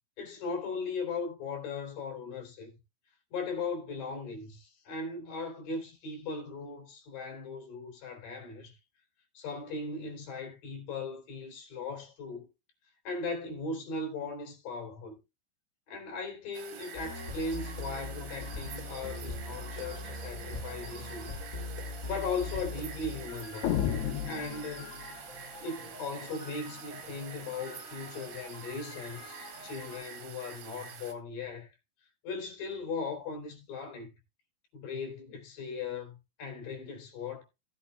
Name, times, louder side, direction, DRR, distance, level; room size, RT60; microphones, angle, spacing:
voice 1, 0.2-2.7 3.3-8.7 9.3-12.5 13.0-15.2 15.9-21.3 22.0-23.7 24.2-24.9 25.6-31.7 32.2-34.1 34.7-37.4, left 4 dB, 45° left, 4.7 m, -38 dB
sound 1, 16.5-31.1, right 7 dB, 80° right, 4.4 m, -47 dB
sound 2, 16.9-30.0, left 2 dB, 15° left, 5.1 m, -43 dB
sound 3, 23.6-25.2, left 9 dB, 70° left, 1.7 m, -32 dB
17.5 x 8.6 x 2.3 m
omnidirectional pair, 5.7 m